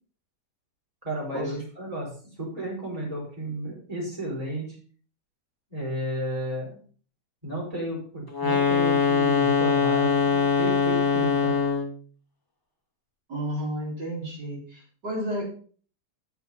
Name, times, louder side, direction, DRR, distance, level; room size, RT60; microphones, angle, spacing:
voice 1, 1.0-2.1 2.4-4.8 5.7-6.8 7.4-11.5, right 1 dB, 20° right, -4 dB, 5.0 m, -33 dB
sound 1, 8.3-12.0, left 5 dB, 15° left, 1.5 m, -22 dB
voice 2, 13.3-15.5, equal, 70° right, -5 dB, 4.9 m, -32 dB
9.5 x 7.1 x 5.5 m, 0.43 s
omnidirectional pair, 1.9 m